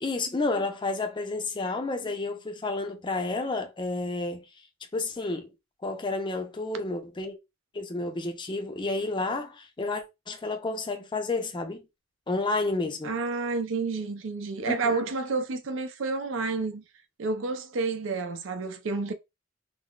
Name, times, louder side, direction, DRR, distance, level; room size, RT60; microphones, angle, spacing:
voice 1, 0.0-4.4 4.9-5.5 5.8-7.4 7.7-11.8 12.3-13.1 14.6-15.1, left 3 dB, 25° left, 0.5 m, -30 dB
voice 2, 13.0-16.8 17.2-19.1, right 4 dB, 90° right, 0.5 m, -30 dB
3.7 x 2.0 x 2.3 m
head